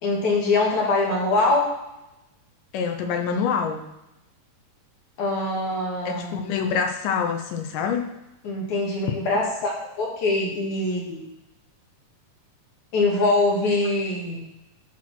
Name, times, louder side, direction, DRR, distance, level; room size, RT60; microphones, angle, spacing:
voice 1, 0.0-1.7 5.2-6.4 8.4-11.2 12.9-14.4, left 2 dB, 60° left, -3 dB, 3.2 m, -23 dB
voice 2, 2.7-3.9 6.1-8.1 9.3-9.4, left 6 dB, 75° left, 5 dB, 2.2 m, -26 dB
12.0 x 4.4 x 6.1 m, 0.94 s
omnidirectional pair, 4.1 m